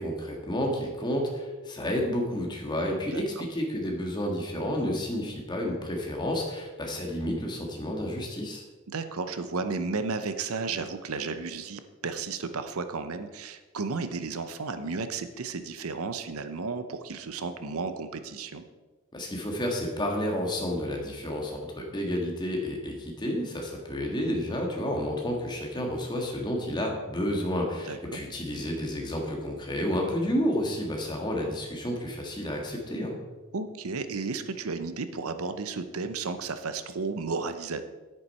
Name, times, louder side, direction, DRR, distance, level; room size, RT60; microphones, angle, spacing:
voice 1, 0.0-8.6 19.1-33.2, equal, 20° left, 0 dB, 1.7 m, -30 dB
voice 2, 3.1-3.4 8.9-18.6 27.9-28.2 33.5-37.8, right 4 dB, 75° right, 10 dB, 0.7 m, -33 dB
9.7 x 9.2 x 4.3 m, 1.2 s
head